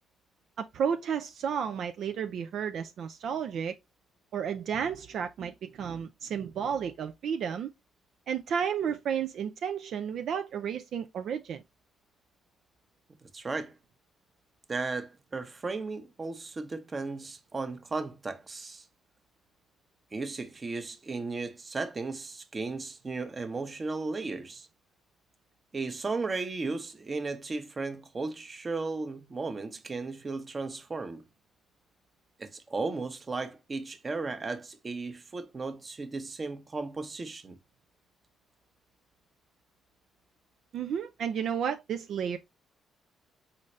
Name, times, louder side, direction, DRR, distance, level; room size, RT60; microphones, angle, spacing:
voice 1, 0.6-3.7 4.3-7.7 8.3-11.6 40.7-42.4, right 7 dB, 65° right, 0.4 m, -32 dB
voice 2, 13.2-13.7 14.7-18.8 20.1-24.7 25.7-31.2 32.4-37.6, right 3 dB, 30° right, 0.9 m, -35 dB
4.2 x 3.8 x 3.1 m
cardioid pair, 90°, 0 cm